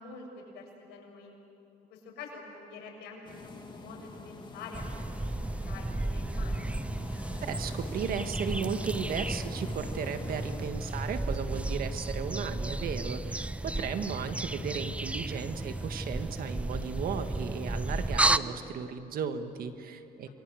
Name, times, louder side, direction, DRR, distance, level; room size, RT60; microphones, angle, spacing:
voice 1, 0.0-1.3 1.9-4.8 5.2-6.7 13.7-14.0, left 4 dB, 85° left, 0 dB, 7.1 m, -47 dB
sound 1, 3.2-10.7, left 3 dB, 25° left, 2.6 m, -46 dB
sound 2, 4.7-18.4, right 2 dB, 5° right, 0.5 m, -33 dB
voice 2, 7.4-20.3, right 6 dB, 60° right, 8 dB, 1.8 m, -35 dB
28.5 x 23.0 x 7.8 m, 2.8 s
cardioid pair, 110°, 17 cm